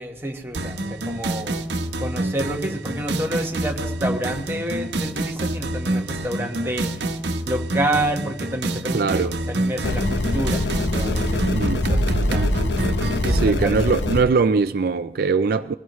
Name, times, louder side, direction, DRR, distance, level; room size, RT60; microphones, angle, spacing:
voice 1, 0.0-1.6 2.0-7.1 7.5-12.6 13.2-14.0, right 1 dB, 15° right, 1.4 m, -29 dB
sound 1, 0.5-13.5, right 1 dB, 75° right, 1.1 m, -26 dB
voice 2, 8.9-9.3 11.5-11.8 13.3-15.7, right 4 dB, 55° right, 0.4 m, -21 dB
sound 2, 9.8-14.2, left 2 dB, 80° left, 0.9 m, -24 dB
22.5 x 16.0 x 3.1 m
head